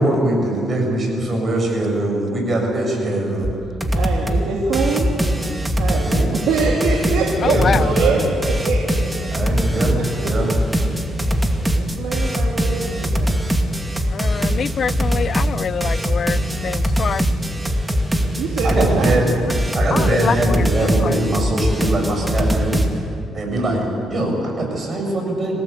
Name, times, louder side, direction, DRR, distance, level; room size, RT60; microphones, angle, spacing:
voice 1, 0.0-3.5 6.0-6.4 7.3-8.3 9.3-10.6 18.6-19.2 19.7-22.9 23.3-25.6, right 1 dB, 40° right, 1 dB, 7.2 m, -22 dB
sound 1, 3.4-3.5 3.8-4.4 4.7-22.9, equal, 15° right, 2.3 m, -21 dB
voice 2, 3.9-5.2 5.7-8.8 11.6-13.6 18.4-19.1, right 4 dB, 85° right, -2 dB, 3.1 m, -23 dB
voice 3, 7.4-7.9 14.1-17.3 19.9-21.2, left 7 dB, 50° left, 17 dB, 0.5 m, -25 dB
27.0 x 17.5 x 8.4 m, 2.5 s
cardioid pair, 90°, 0 cm